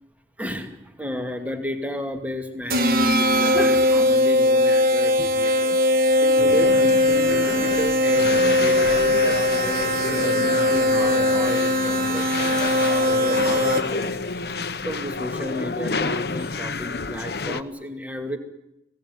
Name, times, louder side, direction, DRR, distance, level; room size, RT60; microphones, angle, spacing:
voice 1, 0.4-14.1 14.3-18.4, left 1 dB, 10° right, 6 dB, 2.4 m, -33 dB
sound 1, 2.7-14.1, left 1 dB, 55° right, 1.9 m, -20 dB
sound 2, 6.4-17.6, left 4 dB, 65° left, 1.0 m, -29 dB
26.0 x 18.0 x 9.7 m, 0.84 s
head